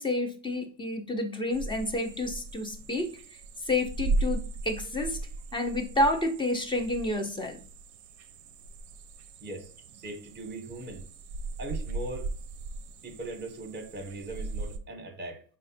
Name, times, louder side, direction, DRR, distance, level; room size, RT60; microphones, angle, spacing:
voice 1, 0.0-5.2 5.5-7.6, left 1 dB, 10° left, 0.4 m, -30 dB
sound 1, 1.5-14.8, right 3 dB, 40° right, 0.5 m, -37 dB
voice 2, 10.0-11.1 11.6-12.3 13.0-15.4, right 2 dB, 20° right, 0.8 m, -39 dB
4.7 x 2.1 x 4.1 m
supercardioid pair, 130°, 47 cm